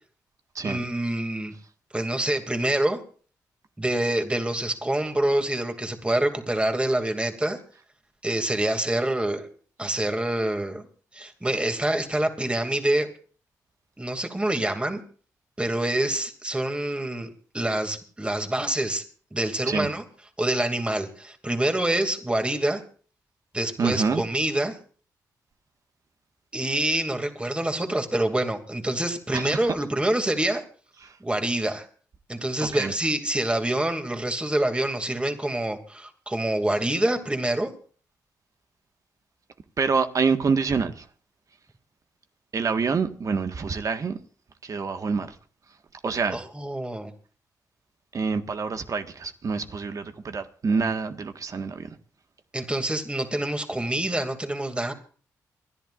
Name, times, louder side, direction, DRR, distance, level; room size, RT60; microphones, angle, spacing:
voice 1, 0.6-1.5 1.9-3.0 3.8-7.6 8.2-9.5 9.8-10.9 11.1-13.1 14.0-15.0 15.6-19.0 19.3-20.0 20.4-22.8 23.5-24.8 26.5-30.6 31.2-31.9 32.3-37.7 46.3-47.1 52.5-54.9, right 1 dB, 15° right, 2.5 m, -26 dB
voice 2, 23.8-24.2 29.3-29.6 31.0-31.2 32.6-32.9 39.8-41.1 42.5-44.2 44.6-45.3 46.0-46.4 48.1-51.9, right 5 dB, 50° right, 1.6 m, -26 dB
28.5 x 11.0 x 2.5 m
cardioid pair, 60°, 7 cm